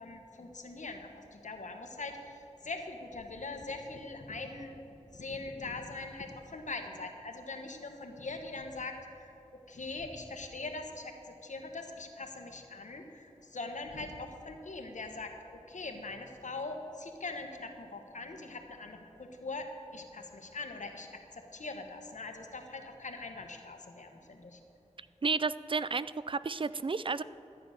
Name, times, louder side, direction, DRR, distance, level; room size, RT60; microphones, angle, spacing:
voice 1, 0.0-4.8 5.1-9.3 9.7-11.1 11.4-15.3 15.7-19.7 19.9-24.6, left 3 dB, 80° left, 4 dB, 1.3 m, -42 dB
voice 2, 25.2-27.2, right 4 dB, 45° right, 15 dB, 0.3 m, -32 dB
13.0 x 8.9 x 6.6 m, 2.9 s
wide cardioid pair, 65°, 12 cm